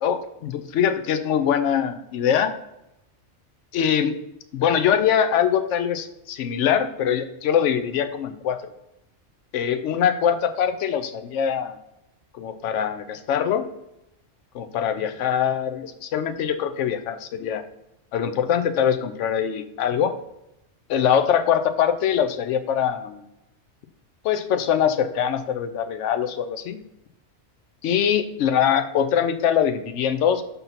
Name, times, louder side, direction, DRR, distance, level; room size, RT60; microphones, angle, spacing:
voice 1, 0.0-2.5 3.7-4.2 4.5-8.6 9.5-11.8 12.3-13.7 14.5-17.6 18.1-20.1 20.9-23.2 24.2-26.8 27.8-30.4, left 8 dB, 85° left, 9 dB, 0.9 m, -23 dB
5.4 x 4.0 x 5.7 m, 0.86 s
omnidirectional pair, 1.2 m